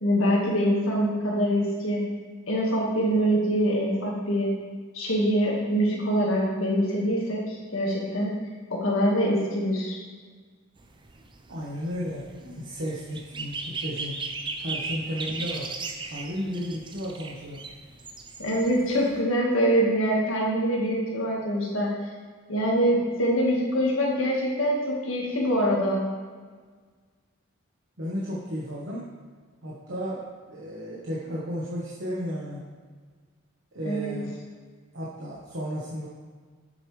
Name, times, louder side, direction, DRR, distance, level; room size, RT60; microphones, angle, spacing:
voice 1, 0.0-2.0 2.5-4.5 4.9-8.3 8.7-10.0 18.4-21.9 22.5-26.0 33.8-34.1, equal, 70° left, -2 dB, 1.7 m, -24 dB
sound 1, 10.8-19.2, right 3 dB, 25° right, 0.5 m, -37 dB
voice 2, 11.5-14.2 14.6-15.7 16.0-17.6 28.0-29.1 29.6-32.7 33.7-34.4 34.9-36.1, equal, 60° right, -6 dB, 1.2 m, -33 dB
8.2 x 6.9 x 3.3 m, 1.5 s
head